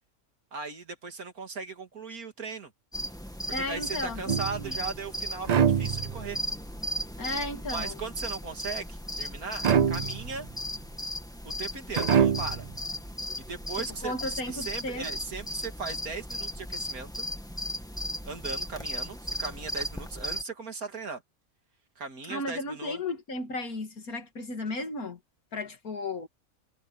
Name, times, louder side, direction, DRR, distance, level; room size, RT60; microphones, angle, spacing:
voice 1, 0.5-2.7 3.7-6.4 7.7-10.5 11.4-12.7 13.5-17.3 18.2-21.2 22.0-23.0, right 4 dB, 85° right, 2.9 m, -38 dB
sound 1, 2.9-20.4, equal, 5° left, 1.8 m, -36 dB
voice 2, 3.5-4.7 7.2-7.9 14.0-15.1 22.3-25.2 25.5-26.3, left 2 dB, 85° left, 3.0 m, -34 dB
sound 2, 4.3-4.8 5.4-6.4 9.6-10.4 11.9-12.7, right 7 dB, 60° right, 0.4 m, -25 dB
omnidirectional pair, 1.5 m